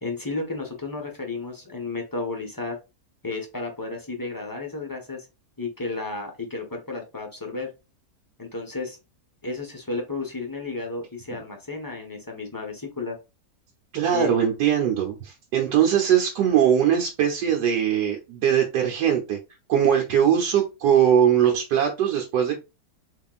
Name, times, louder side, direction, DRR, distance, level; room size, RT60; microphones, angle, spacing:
voice 1, 0.0-2.8 3.2-5.3 5.6-7.7 8.4-9.0 9.4-13.2 14.1-14.4, left 3 dB, 20° left, 2 dB, 0.7 m, -32 dB
voice 2, 13.9-19.4 19.7-22.6, right 9 dB, 80° right, 0 dB, 1.4 m, -21 dB
4.3 x 3.6 x 2.4 m, 0.26 s
omnidirectional pair, 1.8 m